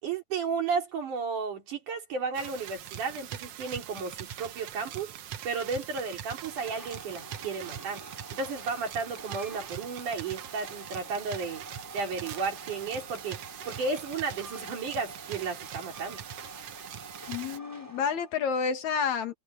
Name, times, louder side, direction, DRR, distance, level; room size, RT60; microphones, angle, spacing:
voice 1, 0.0-5.1 5.5-8.0 8.3-11.6 11.9-13.4 13.7-16.2, right 5 dB, 85° right, 5.4 m, -33 dB
sound 1, 2.3-17.6, right 10 dB, 65° right, 1.9 m, -42 dB
Train, 6.4-18.3, right 1 dB, 5° right, 3.4 m, -47 dB
voice 2, 17.3-19.3, left 6 dB, 70° left, 3.1 m, -29 dB
omnidirectional pair, 3.5 m